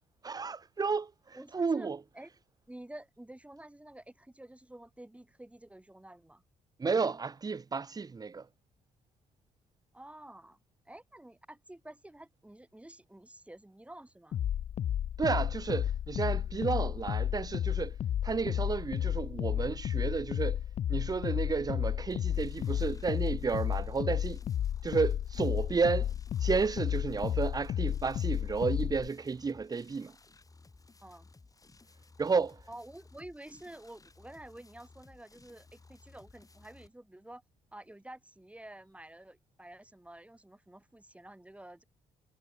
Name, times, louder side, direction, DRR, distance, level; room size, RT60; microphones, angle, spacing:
voice 1, 0.2-2.0 6.8-8.4 15.2-17.9 18.2-20.6 20.9-24.4 24.8-26.1 26.4-30.1 32.2-32.6, right 4 dB, 25° right, 0.8 m, -32 dB
voice 2, 1.3-2.3 2.7-6.4 9.9-10.6 10.9-14.4 31.0-31.3 32.7-37.4 37.7-41.8, right 1 dB, 10° right, 7.7 m, -50 dB
sound 1, 14.3-29.1, left 10 dB, 55° left, 0.5 m, -32 dB
sound 2, 22.1-36.9, left 3 dB, 25° left, 6.5 m, -58 dB
cardioid pair, 80°, 14 cm